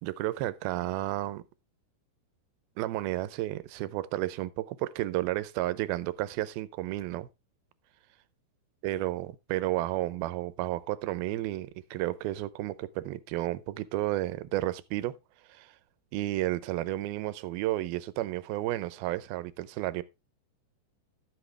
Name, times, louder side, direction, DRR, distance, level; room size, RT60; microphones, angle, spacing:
voice 1, 0.0-1.4 2.8-7.3 8.8-15.2 15.5-15.7 16.1-20.0, right 15 dB, 80° right, 2.4 m, -32 dB
12.5 x 8.0 x 3.3 m
omnidirectional pair, 4.5 m